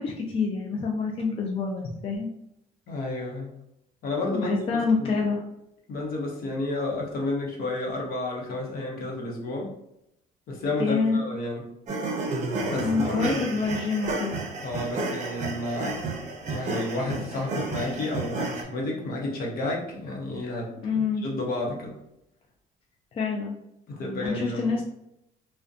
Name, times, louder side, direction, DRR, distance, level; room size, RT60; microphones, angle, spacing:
voice 1, 0.0-2.3 4.2-5.4 10.8-11.2 12.7-14.4 20.8-21.2 23.1-23.6 24.2-24.8, left 4 dB, 35° left, 0 dB, 0.4 m, -27 dB
voice 2, 2.9-3.5 4.0-5.2 5.9-9.7 10.5-11.7 12.6-13.7 14.6-16.0 16.4-22.0 23.9-24.7, left 2 dB, 60° left, -1 dB, 0.8 m, -31 dB
sound 1, 11.9-18.6, right 3 dB, 45° right, 0.6 m, -31 dB
2.4 x 2.1 x 2.4 m, 0.80 s
cardioid pair, 110°, 17 cm